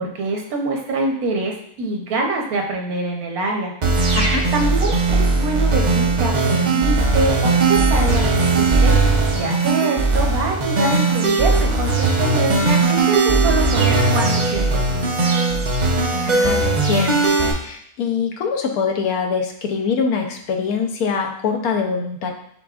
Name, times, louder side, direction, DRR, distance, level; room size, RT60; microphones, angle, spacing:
voice 1, 0.0-3.7 4.5-15.1, right 2 dB, 85° right, 1 dB, 1.3 m, -25 dB
sound 1, 3.8-17.5, right 3 dB, 40° right, 0.7 m, -18 dB
voice 2, 4.1-4.5 16.2-17.3 17.6-22.3, left 5 dB, 90° left, 3 dB, 1.2 m, -23 dB
5.9 x 3.8 x 2.3 m, 0.68 s
omnidirectional pair, 1.5 m